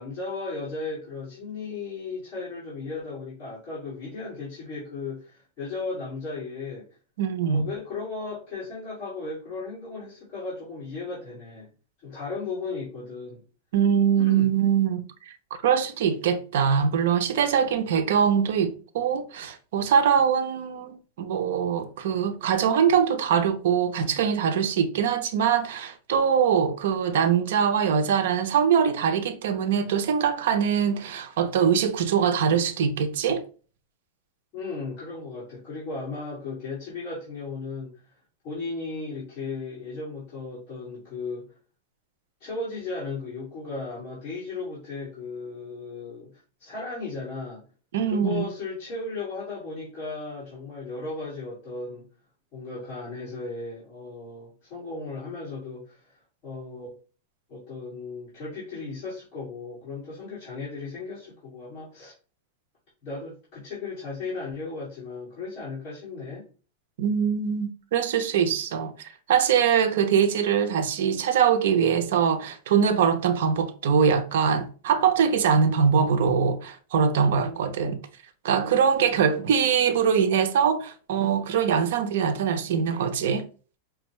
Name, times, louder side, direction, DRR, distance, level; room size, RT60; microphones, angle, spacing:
voice 1, 0.0-6.9 7.4-11.7 12.0-13.4 14.2-14.5 34.5-38.0 38.4-41.6 42.4-47.6 48.1-52.1 52.5-56.9 57.5-62.1 63.0-66.5 77.3-78.0 78.5-79.3, left 3 dB, 30° left, 2.1 m, -36 dB
voice 2, 7.2-7.7 13.7-15.0 15.6-33.4 47.9-48.4 67.0-68.9 69.3-78.0 78.4-83.4, right 7 dB, 65° right, 0.6 m, -23 dB
5.2 x 2.3 x 3.0 m
supercardioid pair, 170°, 0 cm